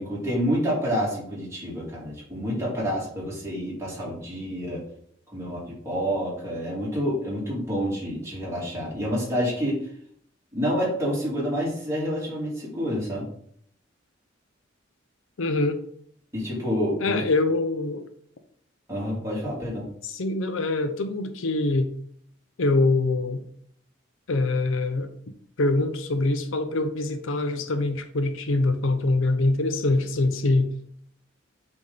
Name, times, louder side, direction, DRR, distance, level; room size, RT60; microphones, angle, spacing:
voice 1, 0.0-4.8 5.3-9.9 10.5-13.3 16.3-17.2 18.9-19.8, equal, 15° right, -6 dB, 2.6 m, -28 dB
voice 2, 15.4-15.8 17.0-18.0 20.0-21.9 22.6-23.4 24.3-25.1 25.6-30.7, left 2 dB, 80° left, 9 dB, 0.6 m, -24 dB
8.2 x 3.5 x 4.0 m, 0.64 s
head